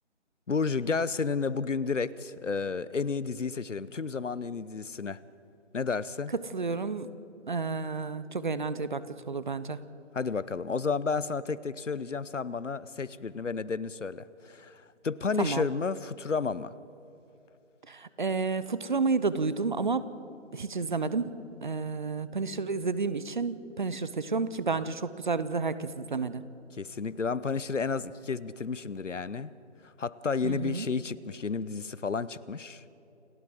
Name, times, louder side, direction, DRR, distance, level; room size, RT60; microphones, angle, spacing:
voice 1, 0.5-5.2 5.7-6.3 10.1-16.7 26.8-29.5 29.8-32.8, left 5 dB, 80° left, 18 dB, 0.9 m, -31 dB
voice 2, 6.3-7.1 7.5-9.8 15.4-15.7 17.9-20.1 20.5-21.4 21.6-26.4 30.4-30.9, right 4 dB, 40° right, 15 dB, 0.8 m, -31 dB
29.0 x 12.0 x 7.6 m, 2.9 s
figure-of-eight pair, 155°, 36 cm